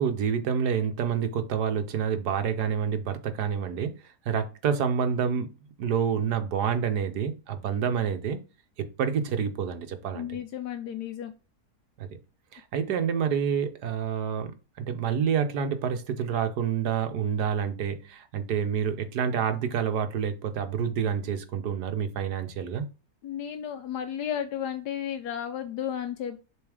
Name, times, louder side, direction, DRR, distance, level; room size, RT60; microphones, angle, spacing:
voice 1, 0.0-3.9 4.2-5.5 5.8-8.4 8.8-10.3 12.0-12.1 12.5-22.8, right 7 dB, 80° right, 1.5 m, -28 dB
voice 2, 10.1-11.3 23.2-26.4, left 9 dB, 80° left, 1.3 m, -33 dB
7.2 x 3.9 x 4.8 m
omnidirectional pair, 1.7 m